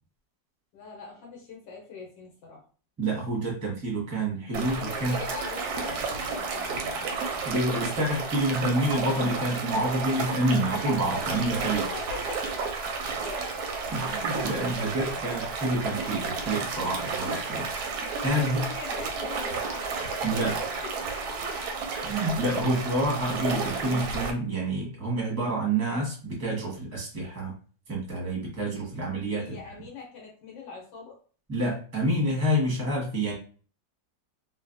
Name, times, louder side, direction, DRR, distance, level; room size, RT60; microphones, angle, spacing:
voice 1, 0.7-2.6 4.4-7.1 11.9-12.4 13.1-13.5 17.8-20.9 29.4-31.2, left 4 dB, 75° left, -2 dB, 1.4 m, -42 dB
voice 2, 3.0-5.2 7.4-11.9 13.9-17.7 18.2-18.7 20.2-20.6 22.0-27.6 27.9-29.5 31.5-33.3, right 1 dB, 15° right, -3 dB, 0.7 m, -28 dB
sound 1, 4.5-24.3, right 4 dB, 70° right, 0.9 m, -32 dB
3.3 x 2.2 x 2.5 m, 0.39 s
omnidirectional pair, 2.0 m